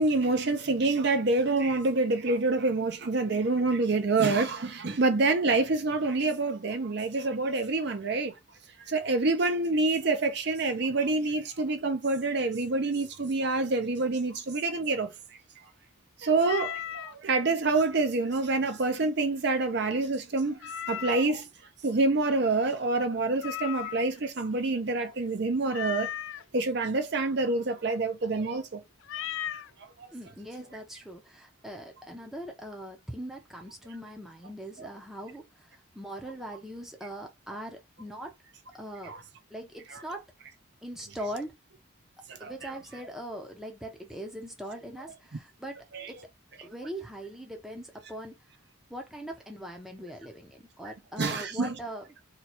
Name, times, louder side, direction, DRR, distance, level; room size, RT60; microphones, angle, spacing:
voice 1, 0.0-8.3 8.8-15.1 16.2-21.5 21.8-26.1 26.5-28.8 34.8-34.9 39.1-39.2 39.9-40.0 42.3-42.5 45.9-46.1 51.2-51.8, right 3 dB, 55° right, 0.5 m, -27 dB
Meow, 16.4-17.1 20.6-21.4 23.4-24.2 25.7-26.4 29.0-29.7, left 10 dB, 70° left, 0.3 m, -36 dB
voice 2, 30.1-38.3 38.7-39.2 39.5-40.3 40.8-41.6 42.4-46.2 46.6-48.4 48.9-52.0, equal, ahead, 0.6 m, -41 dB
2.9 x 2.3 x 4.2 m
head